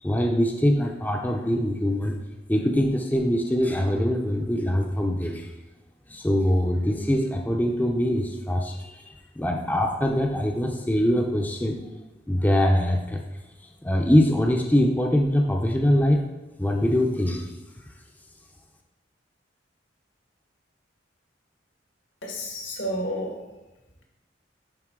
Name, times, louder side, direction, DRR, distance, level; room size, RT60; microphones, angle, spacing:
voice 1, 0.0-2.2 2.5-5.5 6.1-11.8 12.3-13.2 13.8-16.2 16.6-17.6, equal, 10° left, 1 dB, 0.6 m, -23 dB
voice 2, 22.2-23.4, equal, 85° left, 0 dB, 1.7 m, -31 dB
10.5 x 3.8 x 3.8 m, 1.1 s
head